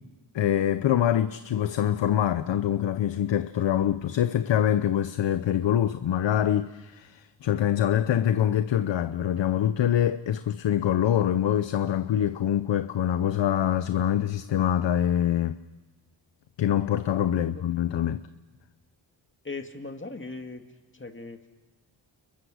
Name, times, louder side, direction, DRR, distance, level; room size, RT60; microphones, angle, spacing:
voice 1, 0.3-15.5 16.6-18.2, left 10 dB, 70° left, 0.8 m, -25 dB
voice 2, 17.2-17.7 19.4-20.6 20.9-21.5, left 3 dB, 25° left, 2.1 m, -39 dB
30.0 x 22.0 x 6.4 m
cardioid pair, 85°, 46 cm